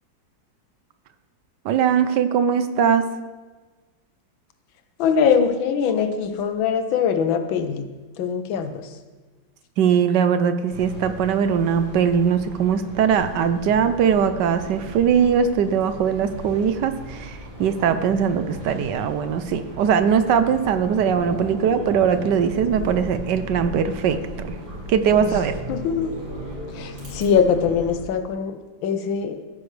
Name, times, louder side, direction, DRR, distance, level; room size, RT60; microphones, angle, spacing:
voice 1, 1.6-3.0 9.8-24.6 24.9-25.6, right 7 dB, 70° right, 10 dB, 1.2 m, -21 dB
voice 2, 5.0-7.8 8.2-8.7 25.2-25.4 25.7-26.1 26.7-28.6 28.8-29.4, left 7 dB, 90° left, 9 dB, 1.6 m, -22 dB
sound 1, 10.7-28.0, equal, 50° right, 4.7 m, -37 dB
15.5 x 9.6 x 3.3 m, 1.3 s
omnidirectional pair, 2.1 m